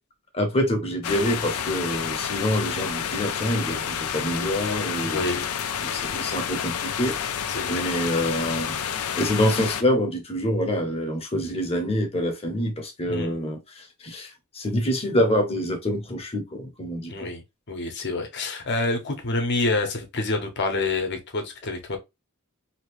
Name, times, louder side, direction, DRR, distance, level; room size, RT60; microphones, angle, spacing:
voice 1, 0.3-5.2 5.8-7.1 7.7-8.8 9.1-14.3 14.5-17.3, equal, 25° left, 0.9 m, -26 dB
sound 1, 1.0-9.8, left 8 dB, 70° left, 0.4 m, -29 dB
voice 2, 5.0-5.5 7.5-7.9 13.1-13.4 17.1-22.0, left 2 dB, 50° left, 0.9 m, -27 dB
2.9 x 2.7 x 3.0 m
head